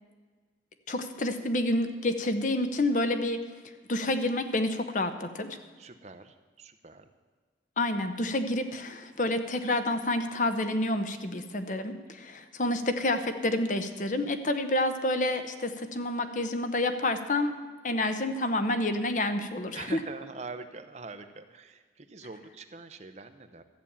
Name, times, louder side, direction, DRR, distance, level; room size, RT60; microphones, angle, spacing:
voice 1, 0.9-3.4 3.9-5.5 7.8-17.6 17.8-19.9, left 1 dB, 45° left, 8 dB, 0.8 m, -29 dB
voice 2, 5.8-7.1 19.7-23.6, right 3 dB, 40° right, 9 dB, 0.7 m, -44 dB
13.5 x 7.1 x 8.6 m, 1.4 s
head